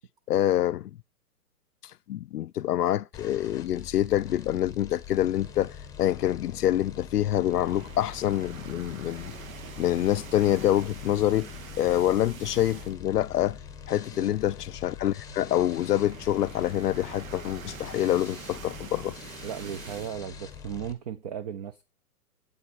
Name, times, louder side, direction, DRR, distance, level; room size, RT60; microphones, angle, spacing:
voice 1, 0.3-0.9 2.1-9.3 9.8-11.5 11.8-13.6 13.9-19.1, left 12 dB, 80° left, 0.5 m, -26 dB
sound 1, 3.1-20.9, left 7 dB, 5° left, 1.0 m, -44 dB
sound 2, 7.4-13.2 13.5-13.7 14.0-14.1 15.1-20.2, right 8 dB, 60° right, 1.0 m, -45 dB
voice 2, 19.4-21.8, right 8 dB, 30° right, 0.5 m, -36 dB
8.4 x 8.4 x 5.0 m
hypercardioid pair, 135°, 46 cm